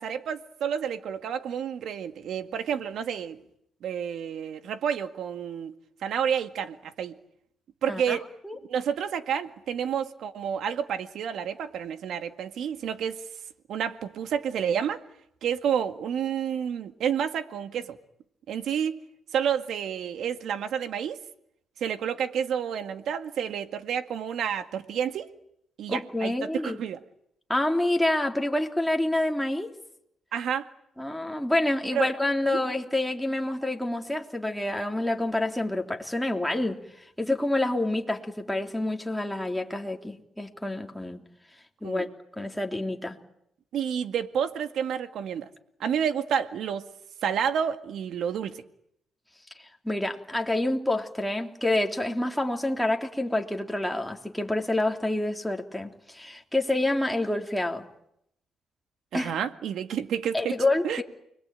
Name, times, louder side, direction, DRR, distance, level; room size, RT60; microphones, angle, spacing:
voice 1, 0.0-3.4 3.8-5.7 6.0-7.2 7.8-8.2 8.7-13.2 13.7-15.0 15.4-18.0 18.5-19.0 19.3-21.2 21.8-25.3 25.8-27.0 30.3-30.7 31.9-32.1 32.5-32.6 41.8-42.1 43.7-45.5 45.8-46.9 47.2-48.6 59.1-60.6 60.8-61.0, right 8 dB, 70° right, 9 dB, 2.0 m, -29 dB
voice 2, 25.9-26.8 27.5-29.7 31.0-36.8 37.2-41.2 41.8-42.1 42.4-43.2 49.8-57.9 59.1-59.3 60.3-61.0, left 1 dB, 5° left, 2 dB, 3.4 m, -27 dB
29.5 x 21.5 x 9.1 m, 0.75 s
cardioid pair, 90°, 0 cm